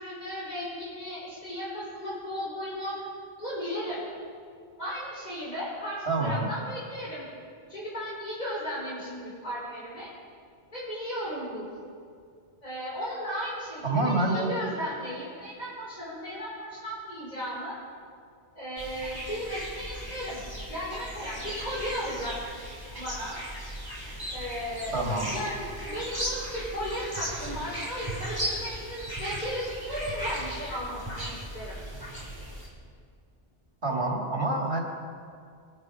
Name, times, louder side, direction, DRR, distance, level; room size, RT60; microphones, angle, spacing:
voice 1, 0.0-2.9 3.4-4.0 4.8-7.3 7.7-10.1 10.7-11.7 12.6-17.8 18.5-20.4 20.7-22.3 22.9-23.4 24.3-24.9 25.3-31.8, equal, 40° left, -7 dB, 4.9 m, -35 dB
voice 2, 6.1-6.5 13.8-14.6 24.9-25.3 33.8-34.8, right 2 dB, 85° right, -1 dB, 3.0 m, -27 dB
sound 1, 18.8-32.7, equal, 20° right, 2.9 m, -37 dB
22.5 x 9.6 x 5.1 m, 2.2 s
omnidirectional pair, 1.1 m